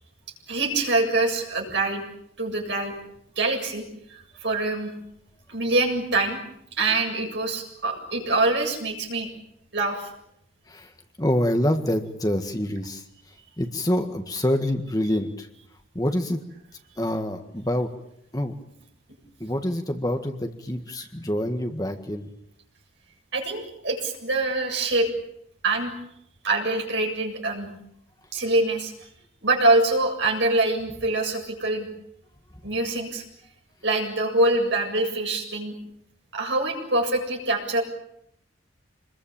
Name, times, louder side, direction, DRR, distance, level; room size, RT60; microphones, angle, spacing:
voice 1, 0.5-2.0 2.4-2.9 3.4-3.8 4.4-4.9 5.5-6.4 6.8-9.3 9.7-10.1 23.3-25.1 25.6-25.9 26.4-27.7 28.3-28.9 29.4-31.9 32.6-33.2 33.8-35.8 36.3-37.8, right 2 dB, 60° right, 1 dB, 7.7 m, -24 dB
voice 2, 11.2-13.0 13.6-15.5 15.9-16.4 17.0-17.9 18.3-18.5 19.4-22.3, left 1 dB, 20° left, 6 dB, 1.7 m, -26 dB
27.5 x 22.0 x 8.8 m, 0.75 s
head